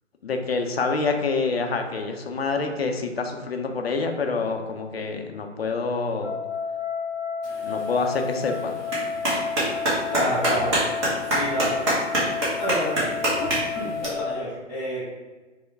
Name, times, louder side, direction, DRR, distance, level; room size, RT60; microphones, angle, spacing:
voice 1, 0.2-6.3 7.6-8.8, left 4 dB, 55° left, 4 dB, 0.6 m, -27 dB
sound 1, 6.2-14.4, left 6 dB, 80° left, 0.8 m, -31 dB
Clapping, 7.4-14.0, right 1 dB, 25° right, 0.8 m, -27 dB
voice 2, 10.1-10.7 11.2-11.7 12.6-13.0 13.7-15.1, equal, 5° left, -19 dB, 0.5 m, -28 dB
4.7 x 2.1 x 3.4 m, 1.2 s
figure-of-eight pair, 135°, 37 cm